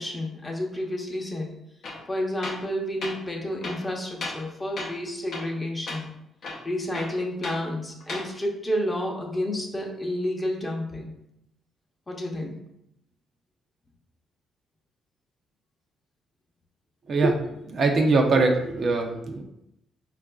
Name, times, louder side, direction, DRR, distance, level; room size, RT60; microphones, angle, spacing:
voice 1, 0.0-1.6 2.1-6.1 6.6-11.1 12.1-12.6, left 1 dB, 20° left, 0 dB, 0.7 m, -30 dB
Tools, 1.8-2.0 2.4-2.7 3.0-3.2 3.6-4.5 4.8-5.0 5.3-5.6 5.9-6.0 6.4-7.6 8.0-8.3, left 2 dB, 60° left, 0.6 m, -35 dB
voice 2, 17.6-19.4, right 3 dB, 50° right, 3 dB, 0.4 m, -22 dB
4.6 x 2.4 x 2.3 m, 0.81 s
cardioid pair, 90°, 0 cm